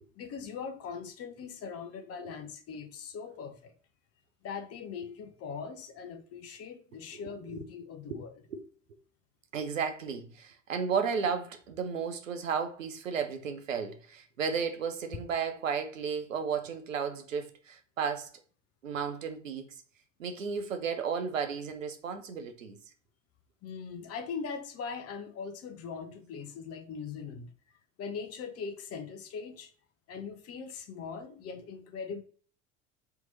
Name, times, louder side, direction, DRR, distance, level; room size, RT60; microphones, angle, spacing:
voice 1, 0.1-3.7 4.4-8.3 23.6-27.5 28.0-29.7 30.1-32.2, left 6 dB, 40° left, 0.8 m, -41 dB
voice 2, 7.1-7.5 8.1-8.2 8.5-8.6 9.5-18.3 18.8-19.7 20.2-22.8, right 6 dB, 85° right, 0.6 m, -33 dB
3.5 x 3.0 x 3.9 m
figure-of-eight pair, 60°, 38 cm